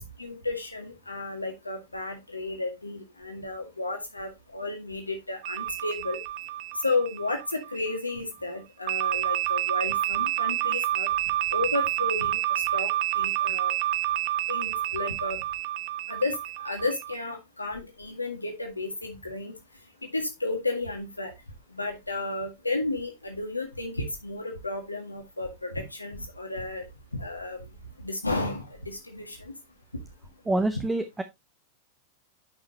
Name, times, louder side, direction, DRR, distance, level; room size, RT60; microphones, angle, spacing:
voice 1, 0.0-6.2 6.7-11.1 11.5-12.4 12.7-13.7 14.5-15.4 16.1-19.6 20.0-21.3 21.7-26.8 27.1-27.7 28.0-29.5, left 2 dB, 85° left, 3 dB, 1.8 m, -33 dB
sound 1, 5.4-8.0 8.9-17.2, right 13 dB, 45° right, 0.7 m, -29 dB
voice 2, 30.5-31.2, right 2 dB, 10° right, 10 dB, 0.8 m, -26 dB
10.5 x 5.8 x 2.9 m, 0.21 s
figure-of-eight pair, 90°, 0 cm